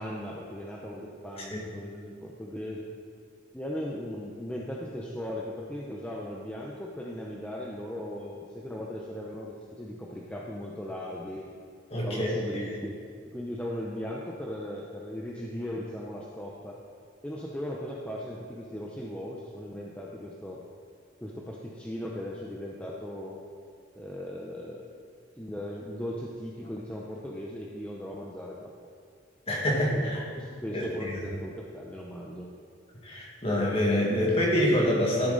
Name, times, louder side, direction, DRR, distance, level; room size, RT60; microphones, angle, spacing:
voice 1, 0.0-2.9 3.5-11.5 12.0-13.0 13.3-16.8 17.2-20.6 21.2-23.4 23.9-24.8 25.4-28.9 29.9-32.5, left 1 dB, 5° left, -3 dB, 0.7 m, -38 dB
voice 2, 11.9-12.3 29.5-30.2 30.7-31.2 33.0-35.3, equal, 30° left, -3 dB, 2.0 m, -26 dB
13.5 x 8.4 x 4.0 m, 2.2 s
head